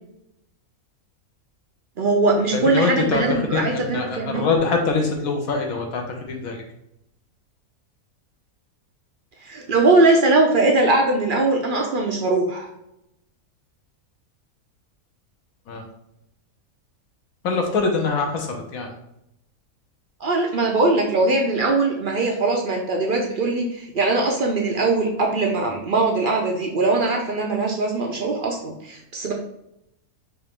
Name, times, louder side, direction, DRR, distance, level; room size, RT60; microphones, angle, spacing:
voice 1, 2.0-4.5 9.5-12.7 20.2-29.3, right 2 dB, 60° right, 1 dB, 0.5 m, -21 dB
voice 2, 2.5-6.6 15.7-15.9 17.4-18.9, left 4 dB, 70° left, 2 dB, 1.3 m, -24 dB
5.3 x 2.6 x 3.6 m, 0.82 s
omnidirectional pair, 1.5 m